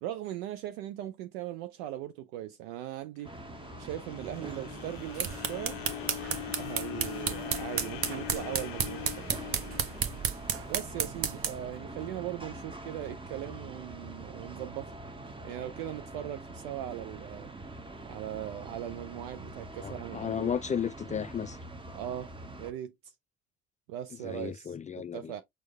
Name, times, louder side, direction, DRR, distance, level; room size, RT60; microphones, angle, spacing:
voice 1, 0.0-3.3 3.7-5.8 6.6-9.3 10.7-15.0 15.4-17.5 18.1-20.5 21.9-22.3 22.6-22.9 23.9-24.7 25.1-25.4, right 12 dB, 65° right, 0.5 m, -39 dB
sound 1, 3.2-11.4, left 14 dB, 70° left, 0.6 m, -42 dB
sound 2, 3.2-22.7, right 2 dB, 15° right, 0.8 m, -44 dB
sound 3, 4.9-11.7, right 7 dB, 40° right, 0.9 m, -33 dB
voice 2, 19.8-21.6 24.2-25.3, left 7 dB, 25° left, 0.4 m, -34 dB
6.2 x 2.2 x 3.3 m
figure-of-eight pair, 45°, 33 cm